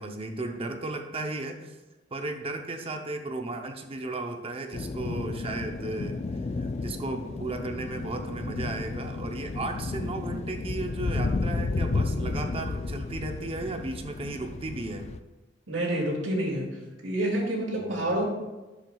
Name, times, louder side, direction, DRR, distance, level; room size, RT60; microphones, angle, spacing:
voice 1, 0.0-1.8 2.1-15.1 17.8-18.2, right 2 dB, 30° right, 5 dB, 0.6 m, -35 dB
sound 1, 4.7-15.2, left 3 dB, 35° left, 0.3 m, -32 dB
voice 2, 15.7-16.7 17.0-18.3, right 1 dB, 80° right, -2 dB, 2.3 m, -28 dB
10.5 x 7.4 x 2.3 m, 1.1 s
head